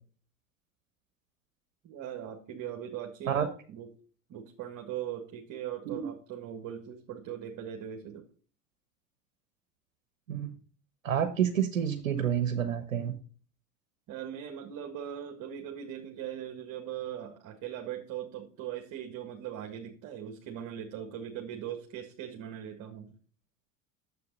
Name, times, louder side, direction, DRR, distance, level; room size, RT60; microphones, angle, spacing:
voice 1, 1.8-3.9 4.3-8.3 14.1-23.1, right 10 dB, 50° right, 3 dB, 1.9 m, -40 dB
voice 2, 11.0-13.1, right 9 dB, 90° right, 9 dB, 1.1 m, -29 dB
9.6 x 7.7 x 4.0 m, 0.42 s
hypercardioid pair, 80°, 39 cm